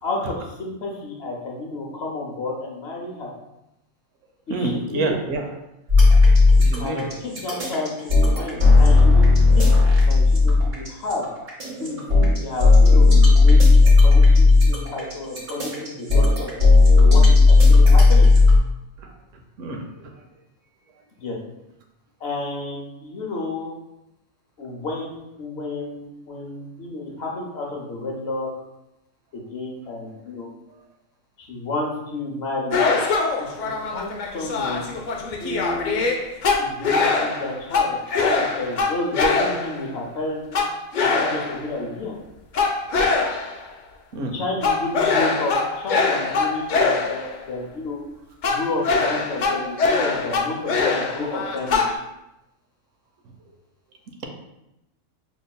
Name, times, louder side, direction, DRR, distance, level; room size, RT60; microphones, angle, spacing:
voice 1, 0.0-3.3 4.5-5.2 6.8-9.6 10.0-11.3 11.8-13.6 14.0-16.5 17.0-18.3 21.2-21.4 22.2-23.7 24.6-28.5 29.3-30.5 31.4-32.8 33.4-34.9 35.4-36.0 36.6-40.4 41.0-42.2 44.3-48.0 48.5-51.8, left 2 dB, 60° left, -1 dB, 0.9 m, -31 dB
voice 2, 4.5-5.4 6.6-7.0 19.6-19.8 44.1-44.3, right 2 dB, 75° right, 3 dB, 0.9 m, -26 dB
sound 1, 5.9-18.6, left 3 dB, 40° right, 1.0 m, -13 dB
sound 2, 32.7-39.9 40.5-41.8 42.5-43.6 44.6-47.4 48.4-52.0, left 4 dB, 85° left, 0.4 m, -23 dB
5.0 x 2.9 x 2.2 m, 0.90 s
omnidirectional pair, 1.4 m